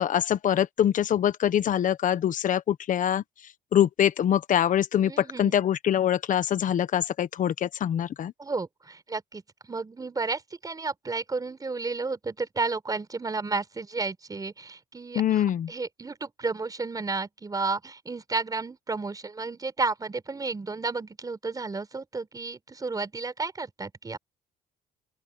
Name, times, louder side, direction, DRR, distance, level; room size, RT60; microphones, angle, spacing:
voice 1, 0.0-3.2 3.7-8.3 15.1-15.7, left 10 dB, 50° left, 1.3 m, -24 dB
voice 2, 5.0-5.5 8.4-24.2, right 3 dB, 20° right, 4.9 m, -32 dB
open air
cardioid pair, 110°, 17 cm